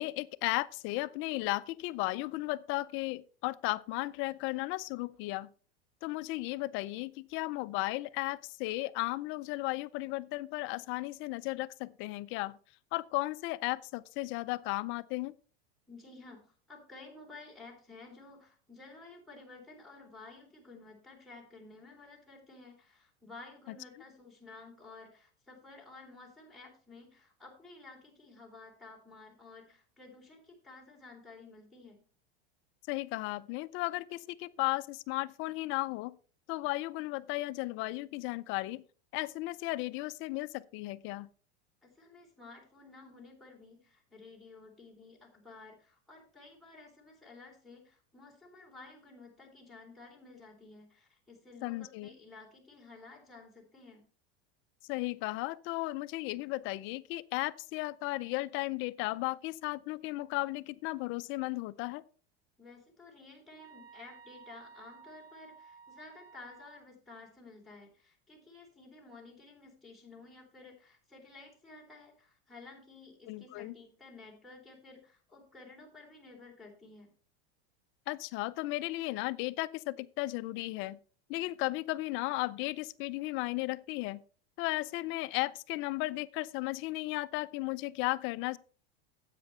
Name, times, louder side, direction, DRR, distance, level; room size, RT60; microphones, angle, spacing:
voice 1, 0.0-5.5 6.0-12.6 12.9-15.3 32.9-36.1 36.5-38.8 39.1-41.3 51.6-52.1 54.9-62.0 73.3-73.7 78.1-81.0 81.3-84.2 84.6-88.6, left 20 dB, 40° left, 0.4 m, -35 dB
voice 2, 15.9-32.0 41.8-54.0 62.6-77.1, left 3 dB, ahead, 3.7 m, -53 dB
sound 1, 63.6-66.8, right 6 dB, 80° right, 1.4 m, -55 dB
10.0 x 8.2 x 4.2 m
supercardioid pair, 130°, 31 cm